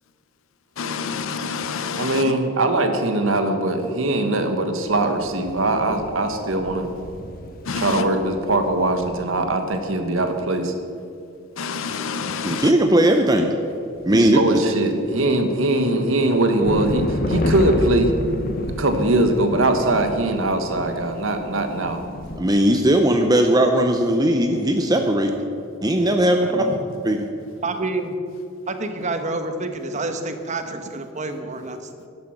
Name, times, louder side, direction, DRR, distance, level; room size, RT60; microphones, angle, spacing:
voice 1, 0.8-2.2 7.7-8.0 11.6-12.7, left 5 dB, 75° left, 0.6 m, -28 dB
voice 2, 2.0-6.9 7.7-10.7 14.1-18.1 18.8-22.0 26.4-26.7, right 2 dB, 70° right, 1.3 m, -21 dB
sound 1, 4.9-10.1 15.0-22.4, left 1 dB, 45° left, 1.0 m, -31 dB
voice 3, 12.4-13.5 14.0-14.4 22.4-25.3 25.8-26.7 27.0-27.3, right 1 dB, 20° right, 0.6 m, -18 dB
voice 4, 27.6-28.1 28.7-31.8, right 2 dB, 35° right, 1.0 m, -28 dB
11.5 x 11.5 x 6.0 m
head